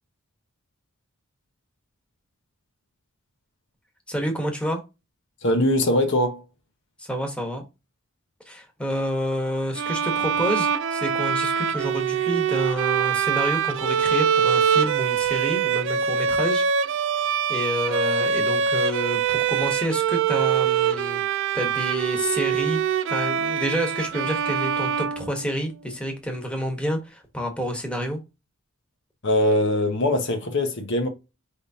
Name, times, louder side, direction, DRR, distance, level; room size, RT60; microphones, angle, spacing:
voice 1, 4.1-4.8 7.0-7.6 8.5-16.6 17.5-21.2 21.5-22.8 23.1-28.2, equal, 5° left, 1.1 m, -29 dB
voice 2, 5.4-6.4 29.2-31.1, left 1 dB, 55° left, 0.8 m, -22 dB
Bowed string instrument, 9.7-25.8, right 7 dB, 60° right, 0.4 m, -24 dB
5.0 x 3.5 x 2.7 m
head